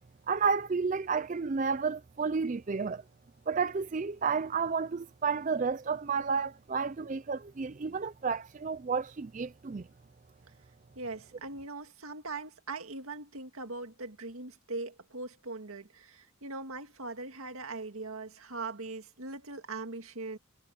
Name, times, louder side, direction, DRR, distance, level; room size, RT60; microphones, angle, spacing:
voice 1, 0.3-3.0 3.5-9.9, right 5 dB, 35° right, 0.4 m, -31 dB
voice 2, 11.0-20.4, right 3 dB, 85° right, 2.0 m, -40 dB
head